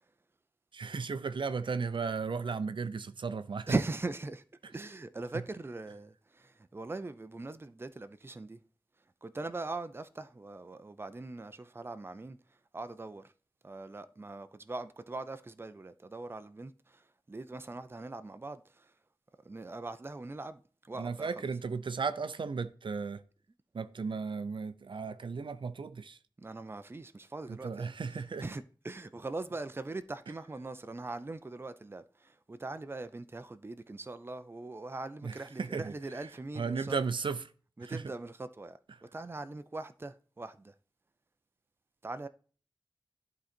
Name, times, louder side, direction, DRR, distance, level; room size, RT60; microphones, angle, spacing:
voice 1, 0.7-3.7 5.3-5.4 20.9-23.2 23.7-26.2 27.5-28.4 35.2-35.9 36.6-37.5 37.8-38.0, right 5 dB, 80° right, 0.5 m, -35 dB
voice 2, 3.7-8.6 9.2-12.4 12.7-13.3 13.6-18.9 19.4-21.5 26.4-27.9 28.4-37.0 37.8-38.8 39.1-40.7 42.0-42.3, right 2 dB, 30° right, 0.5 m, -40 dB
11.5 x 3.9 x 4.3 m
wide cardioid pair, 80°, 8 cm